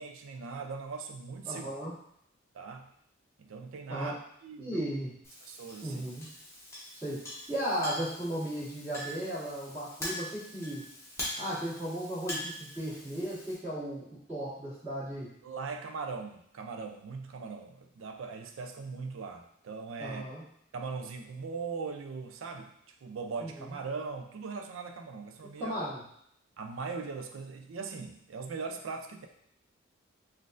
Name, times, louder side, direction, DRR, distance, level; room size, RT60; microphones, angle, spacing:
voice 1, 0.0-1.7 2.5-2.9 3.4-4.2 4.4-4.9 5.4-6.0 15.4-20.3 20.7-22.7 23.0-25.8 26.6-29.3, right 4 dB, 75° right, 5 dB, 0.4 m, -40 dB
voice 2, 1.5-1.9 3.9-4.1 4.6-5.1 5.8-6.3 7.0-7.2 7.5-10.8 11.4-15.3 20.0-20.4 23.4-23.7 25.6-26.0, right 1 dB, 10° right, -17 dB, 1.4 m, -35 dB
Chink clink, 5.2-13.6, left 1 dB, 15° left, 0.9 m, -43 dB
3.9 x 2.5 x 2.5 m, 0.70 s
head